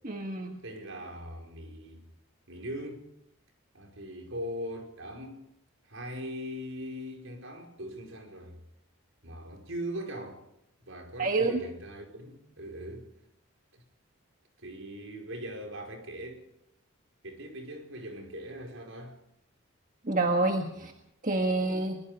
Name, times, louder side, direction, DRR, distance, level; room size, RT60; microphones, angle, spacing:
voice 1, 0.0-0.6 11.2-11.6 20.0-20.9 21.2-22.0, right 2 dB, 40° right, 1.6 m, -27 dB
voice 2, 0.6-2.0 2.5-3.0 3.7-5.4 5.9-8.6 9.2-10.4 10.8-13.1 13.7-13.8 14.6-16.4 17.2-19.2 20.7-20.9, equal, 70° right, 5.2 m, -40 dB
23.0 x 22.0 x 5.2 m
head